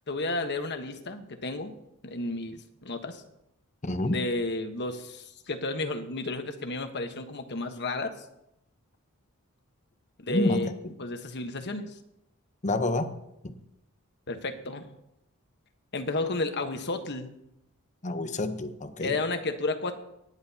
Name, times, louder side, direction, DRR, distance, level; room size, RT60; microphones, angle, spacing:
voice 1, 0.1-1.7 2.0-3.2 4.1-8.1 10.2-10.7 11.0-11.9 14.3-14.9 15.9-17.3 19.0-19.9, left 2 dB, 55° left, 7 dB, 1.3 m, -32 dB
voice 2, 3.8-4.2 10.3-10.7 12.6-13.1 13.4-13.5 18.0-19.1, left 2 dB, 35° left, 9 dB, 0.9 m, -28 dB
25.5 x 10.5 x 2.9 m, 0.83 s
head